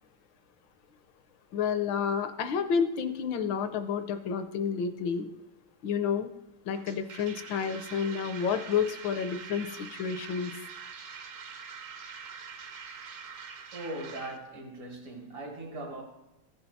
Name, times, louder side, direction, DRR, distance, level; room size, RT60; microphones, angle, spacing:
voice 1, 1.5-5.3 5.8-6.3 6.7-10.5, left 6 dB, 70° left, 1.3 m, -30 dB
sound 1, 6.7-14.4, right 6 dB, 65° right, 0.8 m, -44 dB
voice 2, 13.7-16.0, right 1 dB, 85° right, 2.8 m, -40 dB
14.5 x 5.7 x 4.0 m
omnidirectional pair, 2.4 m